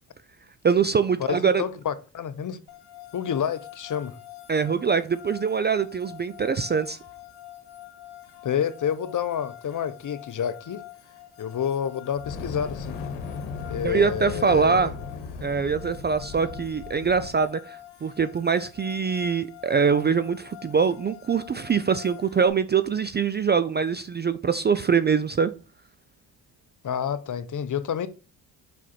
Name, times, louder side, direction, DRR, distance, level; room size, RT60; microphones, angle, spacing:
voice 1, 0.6-1.6 4.5-7.0 13.8-14.9 15.4-25.5, right 6 dB, 25° right, 0.4 m, -23 dB
voice 2, 1.2-2.6 3.1-4.2 8.4-10.8 11.4-13.0 13.7-14.9 26.8-28.1, left 8 dB, 40° left, 0.8 m, -29 dB
sound 1, 2.7-22.5, left 14 dB, 55° left, 1.3 m, -46 dB
Fire, 12.1-17.4, left 4 dB, 75° left, 1.2 m, -36 dB
5.3 x 4.9 x 4.3 m
supercardioid pair, 65°, 46 cm